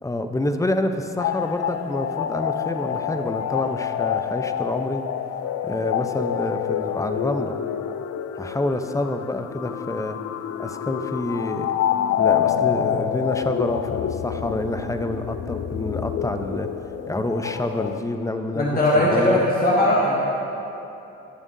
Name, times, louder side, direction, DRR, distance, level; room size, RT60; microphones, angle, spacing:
voice 1, 0.0-5.0 5.6-7.6 8.4-10.2 10.6-11.7 12.2-16.7 17.1-18.6 18.9-19.4, left 1 dB, 10° left, 7 dB, 0.8 m, -27 dB
sound 1, 1.2-18.0, left 9 dB, 55° left, 0.5 m, -27 dB
voice 2, 18.5-20.2, left 1 dB, 30° left, -5 dB, 1.8 m, -19 dB
19.5 x 7.2 x 2.8 m, 2.9 s
hypercardioid pair, 55°, 31 cm